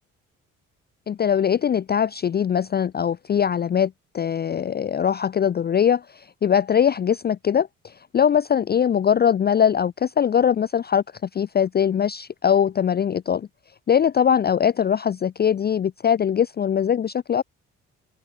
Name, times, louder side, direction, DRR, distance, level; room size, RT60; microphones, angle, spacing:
voice 1, 1.1-11.0 11.3-13.5 13.9-17.4, left 8 dB, 25° left, 0.6 m, -21 dB
open air
figure-of-eight pair, 45°, 39 cm